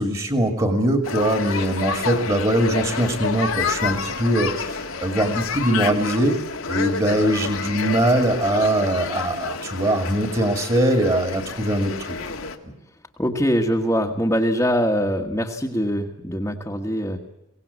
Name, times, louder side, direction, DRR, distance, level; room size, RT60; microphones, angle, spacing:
voice 1, 0.0-6.4 6.7-12.2 12.6-12.7, right 1 dB, 25° right, 6 dB, 2.3 m, -22 dB
sound 1, 1.0-12.6, left 5 dB, 80° left, 2.0 m, -29 dB
voice 2, 13.2-17.3, equal, 10° left, -1 dB, 1.4 m, -23 dB
23.5 x 18.0 x 8.3 m, 0.95 s
head